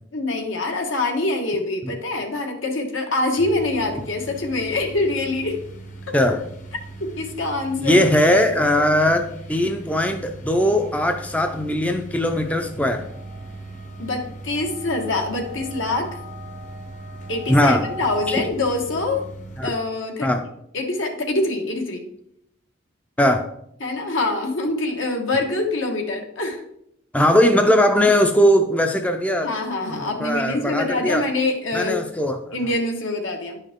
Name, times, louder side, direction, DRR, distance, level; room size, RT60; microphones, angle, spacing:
voice 1, 0.1-5.6 6.1-6.2 7.0-8.0 14.0-16.1 17.3-19.2 19.6-20.3 20.7-22.1 23.8-26.6 29.4-32.0 32.5-33.6, left 2 dB, 75° left, 3 dB, 1.5 m, -25 dB
sound 1, 3.4-19.7, right 2 dB, 40° left, 0.9 m, -39 dB
voice 2, 6.1-6.4 7.8-13.0 17.5-17.8 19.6-19.7 20.2-20.4 23.2-23.4 27.1-29.5 29.9-31.3 31.7-32.4, left 1 dB, 5° left, 5 dB, 0.4 m, -19 dB
sound 2, 12.3-18.5, left 3 dB, 40° right, 0.6 m, -40 dB
10.5 x 5.5 x 3.6 m, 0.75 s
head